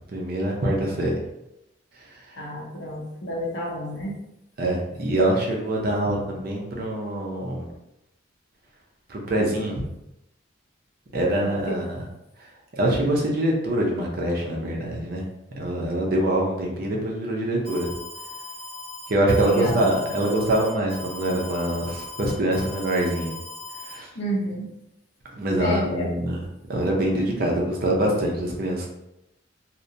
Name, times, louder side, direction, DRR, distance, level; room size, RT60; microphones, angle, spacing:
voice 1, 0.1-1.2 4.6-7.7 9.1-9.8 11.1-12.0 12.8-15.2 15.6-17.9 19.1-23.3 23.8-24.1 25.4-26.4 26.7-28.9, right 1 dB, 50° right, -1 dB, 0.5 m, -24 dB
voice 2, 2.4-4.2 11.4-11.8 19.4-19.9 24.1-24.7 25.6-26.2, equal, 60° left, -2 dB, 0.7 m, -30 dB
Alarm, 17.6-23.9, left 3 dB, 40° left, 1.0 m, -39 dB
2.8 x 2.1 x 2.6 m, 0.86 s
head